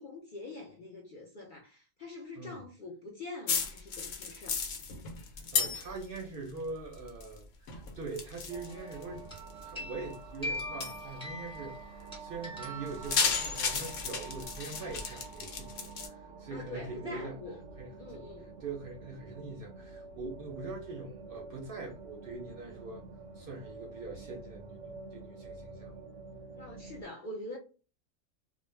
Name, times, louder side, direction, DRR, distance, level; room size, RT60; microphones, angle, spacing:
voice 1, 0.0-4.6 16.5-17.6 18.0-18.5 26.6-27.6, left 2 dB, 55° left, 0.6 m, -44 dB
sound 1, 3.5-6.2 6.5-7.4 7.7-9.6 10.1-10.2 10.8-11.0 12.9-16.1, left 5 dB, 75° left, 1.0 m, -33 dB
voice 2, 5.3-9.2 9.6-17.4 17.8-18.3 18.6-23.0 23.3-26.1, right 3 dB, 55° right, 0.7 m, -43 dB
sound 2, 8.5-27.0, right 4 dB, 90° right, 1.0 m, -48 dB
sound 3, 8.7-9.0 9.3-13.7, left 1 dB, 5° left, 0.9 m, -42 dB
2.4 x 2.1 x 3.1 m
omnidirectional pair, 1.3 m